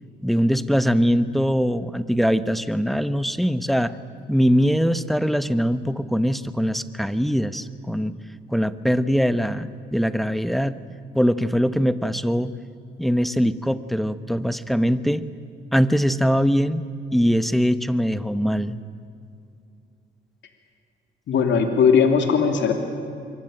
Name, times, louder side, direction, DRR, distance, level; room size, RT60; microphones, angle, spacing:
voice 1, 0.2-3.9 4.3-8.1 8.5-10.8 11.1-12.5 13.0-15.2 15.7-16.8 17.1-18.8, equal, ahead, 13 dB, 1.1 m, -22 dB
voice 2, 21.3-22.7, left 6 dB, 65° left, 5 dB, 3.0 m, -18 dB
26.0 x 24.0 x 9.0 m, 2.5 s
cardioid pair, 90°, 20 cm